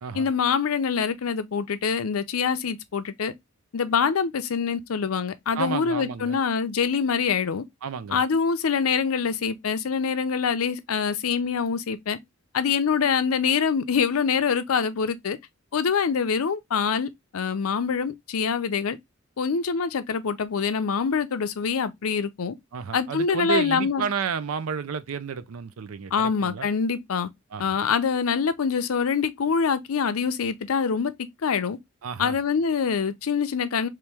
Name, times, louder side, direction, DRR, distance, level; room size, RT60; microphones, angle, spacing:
voice 1, 0.1-3.3 3.7-7.6 8.1-12.2 12.5-15.4 15.7-19.0 19.4-22.5 22.9-24.1 26.1-27.3 27.6-31.1 31.4-31.8 32.2-33.9, left 6 dB, 85° left, 0.5 m, -25 dB
voice 2, 5.5-6.4 7.8-8.2 22.7-26.7 27.5-27.8 32.0-32.4, right 6 dB, 85° right, 0.5 m, -31 dB
3.1 x 2.9 x 3.3 m
head